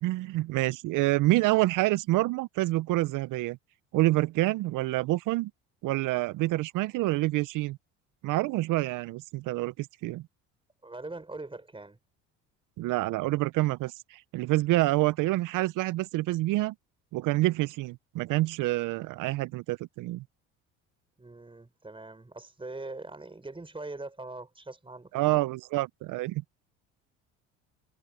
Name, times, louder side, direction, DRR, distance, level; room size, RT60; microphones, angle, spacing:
voice 1, 0.0-3.6 3.9-5.5 5.8-7.8 8.2-10.2 12.8-16.7 17.1-20.2 25.1-26.4, right 18 dB, 65° right, 0.8 m, -27 dB
voice 2, 10.8-12.0 21.2-25.5, right 2 dB, 15° right, 4.9 m, -42 dB
supercardioid pair, 75°, 34 cm